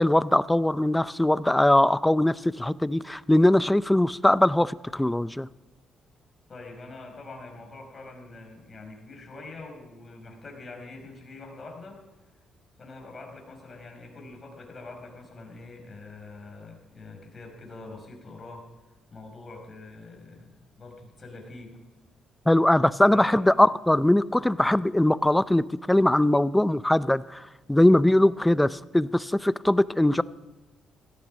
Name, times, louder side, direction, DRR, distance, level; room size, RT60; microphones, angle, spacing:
voice 1, 0.0-5.5 22.5-30.2, left 1 dB, 10° left, 17 dB, 0.5 m, -21 dB
voice 2, 6.5-12.0 12.8-18.6 19.1-21.8 23.0-23.4, left 3 dB, 35° left, 2 dB, 5.1 m, -44 dB
17.0 x 13.0 x 5.2 m, 1.1 s
cardioid pair, 90°, 0 cm